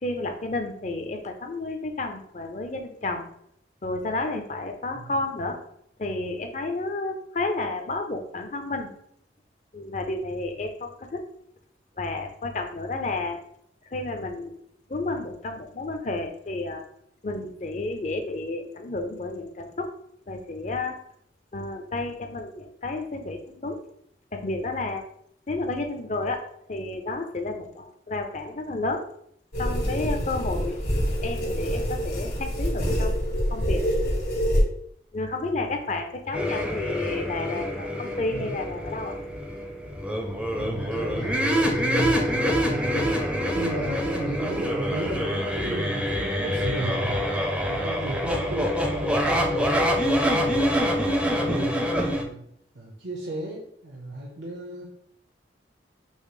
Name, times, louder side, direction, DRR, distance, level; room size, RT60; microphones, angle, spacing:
voice 1, 0.0-3.3 3.8-5.6 6.0-8.9 9.7-11.2 12.0-13.4 13.9-14.5 14.9-16.8 17.2-19.9 20.3-21.0 21.5-23.8 24.3-25.0 25.5-26.4 26.7-29.0 29.6-30.8 31.2-33.2 33.5-33.8 35.1-39.2, left 2 dB, 40° left, 5 dB, 0.6 m, -31 dB
sound 1, 29.5-34.6, equal, 65° left, 1.8 m, -26 dB
sound 2, 36.3-52.2, equal, 5° right, 0.5 m, -26 dB
voice 2, 40.5-43.2 43.6-47.2 47.7-50.6 50.9-52.4 52.7-54.9, right 1 dB, 80° right, -2 dB, 0.8 m, -34 dB
5.4 x 2.0 x 4.8 m, 0.71 s
head